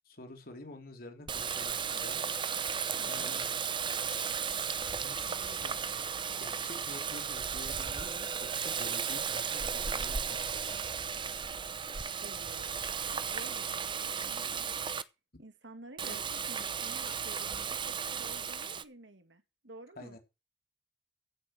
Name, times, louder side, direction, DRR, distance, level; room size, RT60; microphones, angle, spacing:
voice 1, 0.0-2.2 3.1-3.5 5.0-5.8 6.4-10.8 16.0-16.2 20.0-20.2, left 1 dB, 55° left, 3.6 m, -48 dB
Water tap faucet, 1.3-15.0 16.0-18.8, right 6 dB, 25° right, 0.7 m, -35 dB
voice 2, 3.0-3.4 12.2-12.8 13.0-14.7 15.4-20.2, right 2 dB, 85° right, 2.2 m, -51 dB
15.5 x 6.6 x 6.2 m
head